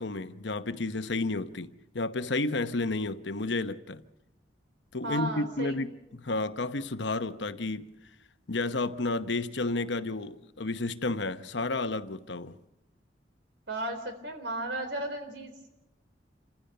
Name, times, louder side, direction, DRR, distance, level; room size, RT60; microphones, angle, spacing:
voice 1, 0.0-4.0 4.9-7.9 8.5-12.6, left 2 dB, 80° left, 0.9 m, -31 dB
voice 2, 5.0-5.8 13.7-15.7, right 1 dB, 85° right, 3.8 m, -35 dB
27.5 x 15.5 x 6.8 m
head